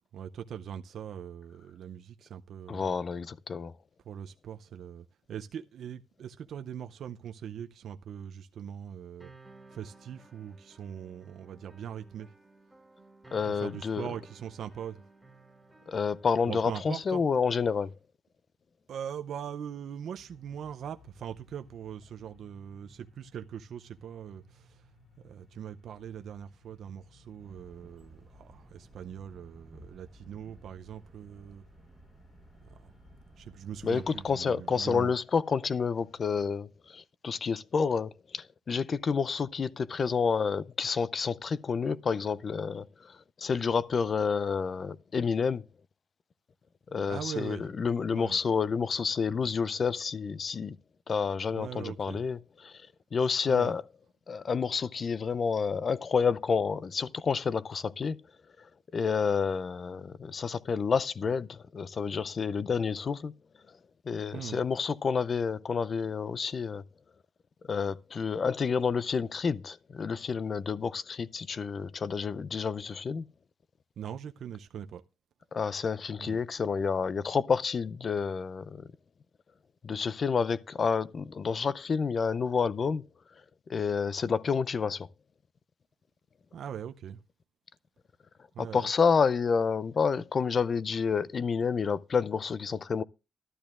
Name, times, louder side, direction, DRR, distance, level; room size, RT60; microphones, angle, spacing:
voice 1, 0.1-2.9 4.1-9.3 9.7-12.3 13.4-15.0 16.5-17.2 18.9-24.8 25.2-31.6 32.6-32.9 33.4-35.1 47.1-47.7 48.1-48.4 51.5-52.2 53.5-53.8 64.3-64.6 74.0-75.0 76.2-76.4 86.5-87.2 88.5-88.9, right 9 dB, 70° right, 0.5 m, -41 dB
voice 2, 2.7-3.7 13.3-14.1 15.9-17.9 33.8-45.6 46.9-50.8 51.1-52.7 53.1-53.8 54.3-58.2 58.9-63.3 64.1-66.8 67.7-73.3 75.5-78.9 79.8-83.0 83.7-85.1 88.6-93.0, left 5 dB, 45° left, 0.4 m, -29 dB
sound 1, 9.2-17.2, right 3 dB, ahead, 2.0 m, -56 dB
sound 2, 20.1-36.4, left 2 dB, 60° left, 4.6 m, -62 dB
sound 3, 27.4-34.4, right 1 dB, 25° right, 1.2 m, -55 dB
12.5 x 12.0 x 2.4 m
cardioid pair, 95°, 0 cm